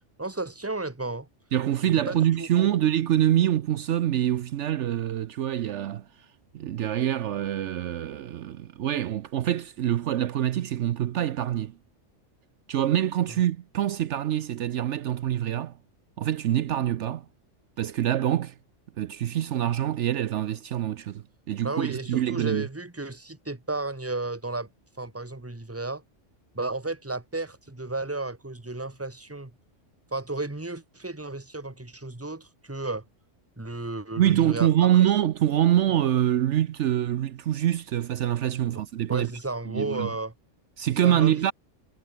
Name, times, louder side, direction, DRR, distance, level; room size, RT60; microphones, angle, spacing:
voice 1, 0.2-1.3 2.1-2.8 21.6-24.7 25.0-26.0 26.5-29.5 30.1-33.0 33.6-35.1 38.6-38.8 39.1-40.3 41.0-41.4, right 2 dB, 10° right, 1.6 m, -33 dB
voice 2, 1.5-6.0 6.5-11.7 12.7-15.8 16.2-17.3 17.8-18.5 19.0-22.7 34.2-39.3 39.7-40.1 40.8-41.5, right 11 dB, 70° right, 1.0 m, -25 dB
omnidirectional pair, 1.3 m